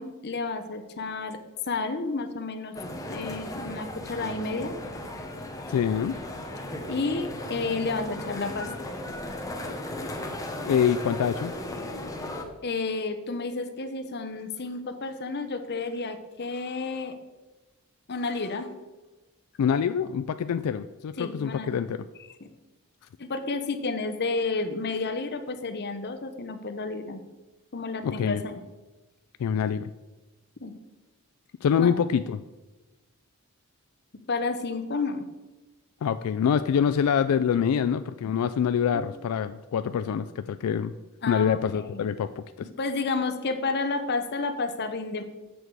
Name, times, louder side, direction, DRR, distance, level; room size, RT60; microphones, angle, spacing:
voice 1, 0.0-1.4 1.7-2.8 3.1-4.8 6.9-8.7 12.6-17.1 18.1-18.7 21.2-21.8 23.2-27.2 27.7-28.5 30.6-30.7 31.8-31.9 34.3-35.2 38.9-39.0 41.2-42.0 42.8-45.2, left 3 dB, 50° left, 7 dB, 0.8 m, -31 dB
sound 1, 2.7-12.4, left 1 dB, 15° left, 0.9 m, -36 dB
voice 2, 5.7-6.2 10.7-11.5 19.6-22.0 28.0-28.4 29.4-29.9 31.6-32.4 36.0-40.9 41.3-42.4, left 7 dB, 80° left, 11 dB, 0.3 m, -25 dB
8.0 x 6.5 x 4.7 m, 1.2 s
head